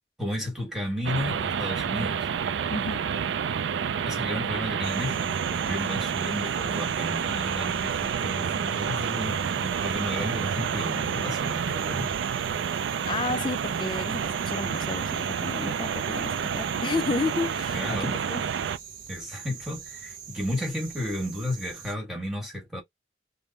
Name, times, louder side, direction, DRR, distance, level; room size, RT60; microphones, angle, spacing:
voice 1, 0.2-2.3 4.0-12.1 17.7-18.2 19.1-22.8, left 1 dB, 5° right, 1.5 m, -33 dB
sound 1, 1.0-18.8, right 7 dB, 85° right, 0.4 m, -29 dB
voice 2, 2.7-3.0 13.1-18.4, left 3 dB, 25° left, 0.3 m, -32 dB
sound 2, 4.8-21.9, right 7 dB, 50° right, 0.8 m, -44 dB
3.5 x 2.0 x 4.0 m
head